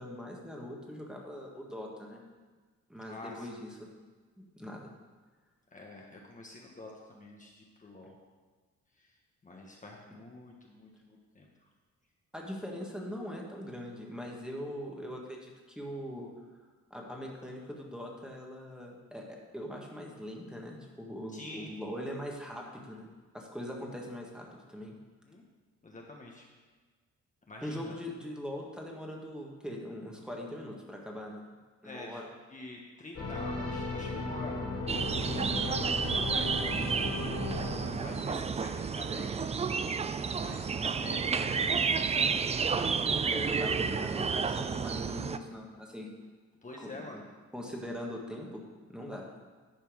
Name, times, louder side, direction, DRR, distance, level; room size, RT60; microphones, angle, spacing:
voice 1, 0.0-2.2 2.9-3.8 4.4-4.9 12.3-16.3 16.9-23.1 23.3-25.0 27.6-31.5 31.8-32.3 43.2-46.1 46.8-47.1 47.5-48.6 48.9-49.3, equal, 5° right, -2 dB, 1.6 m, -41 dB
voice 2, 3.0-3.6 5.7-8.2 9.0-9.2 9.4-11.5 21.3-21.7 25.2-25.4 25.8-26.5 27.5-28.0 31.8-32.2 32.5-34.7 35.0-35.8 36.1-37.1 38.0-42.4 46.6-47.2, left 2 dB, 25° left, -1 dB, 1.3 m, -47 dB
sound 1, 33.1-38.7, left 3 dB, 70° left, 3.2 m, -36 dB
sound 2, 34.9-45.4, right 5 dB, 20° right, 0.4 m, -31 dB
10.5 x 4.5 x 6.2 m, 1.4 s
cardioid pair, 90°, 30 cm